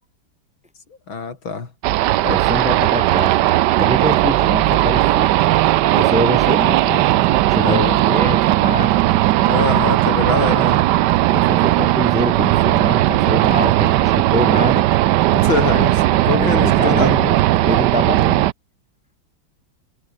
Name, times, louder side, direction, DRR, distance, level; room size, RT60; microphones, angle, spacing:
voice 1, 1.1-1.7 7.6-8.0 9.5-10.8 15.3-17.2, left 5 dB, 80° left, 4.0 m, -24 dB
sound 1, 1.8-18.5, right 15 dB, 70° right, 1.1 m, -16 dB
voice 2, 2.2-3.5 3.8-5.3 6.0-7.1 7.5-8.9 11.3-14.9 16.3-18.5, left 1 dB, 5° right, 2.4 m, -25 dB
omnidirectional pair, 2.2 m